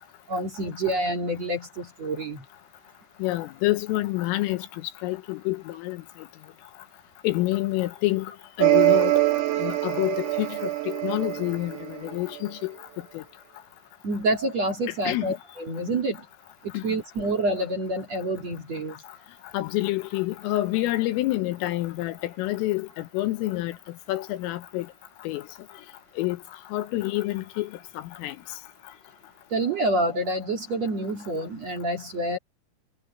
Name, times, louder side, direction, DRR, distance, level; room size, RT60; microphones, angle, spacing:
voice 1, 0.3-2.4 14.0-16.2 16.8-18.9 29.5-32.4, right 1 dB, 45° right, 2.6 m, -27 dB
voice 2, 3.2-4.7 5.0-6.0 7.2-8.3 8.6-9.1 9.6-12.7 13.2-13.3 15.1-15.3 16.7-16.8 19.5-23.8 24.1-24.9 25.3-25.4 26.2-26.4 26.7-27.7 28.2-28.4, left 17 dB, 85° left, 3.7 m, -27 dB
sound 1, 8.6-12.5, right 18 dB, 80° right, 4.9 m, -24 dB
omnidirectional pair, 6.0 m